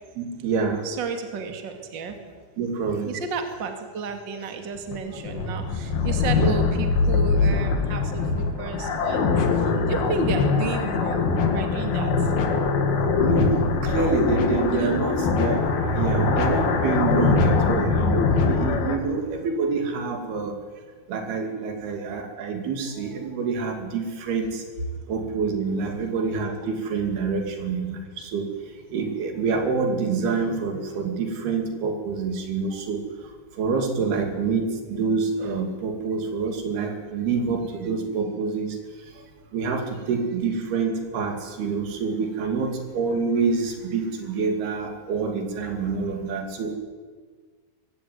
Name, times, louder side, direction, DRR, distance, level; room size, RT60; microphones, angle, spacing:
voice 1, 0.2-0.8 2.6-3.1 6.4-6.6 13.2-20.6 21.1-24.6 25.1-28.5 28.9-33.0 33.6-38.8 39.2-39.3 39.5-46.8, right 4 dB, 80° right, 5 dB, 4.6 m, -27 dB
voice 2, 0.8-2.2 3.0-12.1 14.7-15.0 17.8-17.9, right 5 dB, 35° right, 6 dB, 2.5 m, -32 dB
sound 1, 4.8-19.0, left 4 dB, 70° left, 3.9 m, -22 dB
23.0 x 16.0 x 9.6 m, 1.5 s
omnidirectional pair, 4.5 m